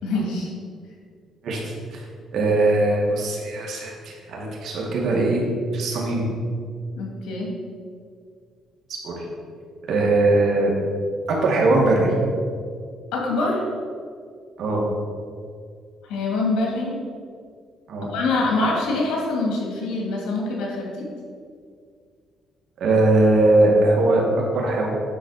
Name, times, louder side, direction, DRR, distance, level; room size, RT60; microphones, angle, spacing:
voice 1, 0.0-0.5 7.0-7.5 13.1-13.6 16.1-17.0 18.0-21.1, left 2 dB, 85° left, -2 dB, 2.6 m, -25 dB
voice 2, 1.4-2.0 2.3-5.4 5.7-6.3 9.0-9.2 9.9-10.7 11.3-12.1 14.6-14.8 17.9-18.1 22.8-24.2 24.5-24.9, right 2 dB, 65° right, -2 dB, 2.3 m, -20 dB
9.8 x 4.4 x 6.5 m, 2.1 s
cardioid pair, 110°, 0 cm